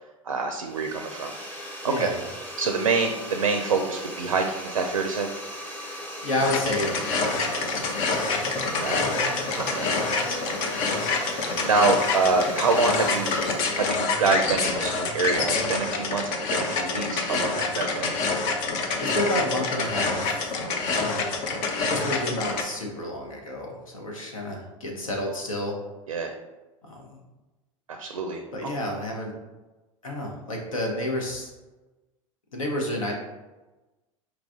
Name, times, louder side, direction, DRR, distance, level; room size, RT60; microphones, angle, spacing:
voice 1, 0.2-2.1 2.6-5.3 8.8-9.0 9.6-10.0 11.6-13.4 13.7-18.2 26.1-26.3 27.9-28.7, right 4 dB, 85° right, 5 dB, 0.4 m, -26 dB
sound 1, 0.6-14.1, equal, 10° left, 1.0 m, -38 dB
voice 2, 1.8-2.3 6.2-6.9 7.2-8.3 8.8-9.1 9.7-11.2 19.0-20.5 20.9-21.3 21.9-25.8 26.8-27.2 28.5-29.3 30.0-31.5 32.5-33.1, left 1 dB, 80° left, 0 dB, 1.0 m, -31 dB
sound 2, 6.4-22.6, left 4 dB, 50° left, 0.7 m, -27 dB
sound 3, 8.3-16.7 17.5-17.7 18.0-18.1, right 1 dB, 35° left, 1.1 m, -44 dB
4.7 x 2.4 x 3.6 m, 1.1 s
figure-of-eight pair, 85°, 17 cm